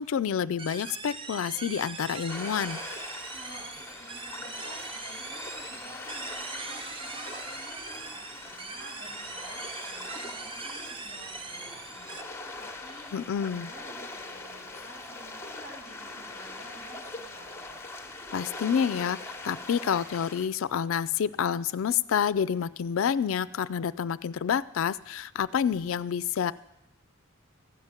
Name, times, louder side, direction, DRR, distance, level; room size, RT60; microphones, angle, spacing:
voice 1, 0.0-2.8 13.1-13.7 18.3-19.2 19.4-26.5, left 7 dB, 65° left, 15 dB, 0.4 m, -28 dB
sound 1, 0.6-12.2, right 4 dB, 25° right, 0.5 m, -41 dB
sound 2, 2.3-20.5, left 2 dB, 10° left, 1.0 m, -42 dB
voice 2, 3.0-17.7, equal, 60° right, -3 dB, 3.5 m, -51 dB
14.5 x 5.8 x 8.9 m, 0.87 s
head